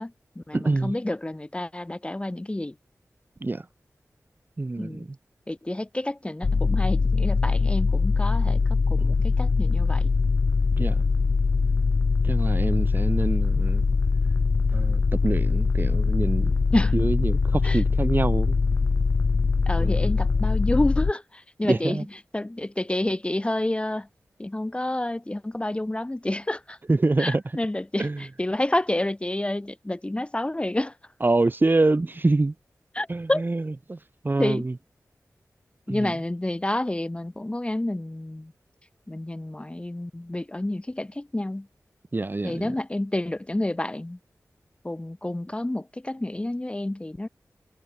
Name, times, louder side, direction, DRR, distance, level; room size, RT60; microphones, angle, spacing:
voice 1, 0.0-2.8 4.8-5.1 5.5-10.1 16.7-17.0 17.6-17.8 19.7-24.1 24.4-26.8 27.2-31.0 32.9-33.4 34.4-34.7 35.9-38.5 39.1-41.7 42.4-44.2 44.8-47.3, left 1 dB, 20° left, 0.9 m, -29 dB
voice 2, 0.5-0.9 3.4-3.6 4.6-5.2 9.0-9.1 10.8-11.0 12.2-13.8 14.7-16.6 16.9-18.6 19.8-20.1 21.6-22.0 26.9-27.4 28.0-28.2 31.2-32.5 33.1-33.6 33.9-34.0 34.2-34.7 35.9-36.1 42.1-42.7, right 2 dB, 35° right, 1.1 m, -25 dB
sound 1, 6.4-21.1, left 4 dB, 50° left, 0.5 m, -22 dB
wide cardioid pair, 70°, 6 cm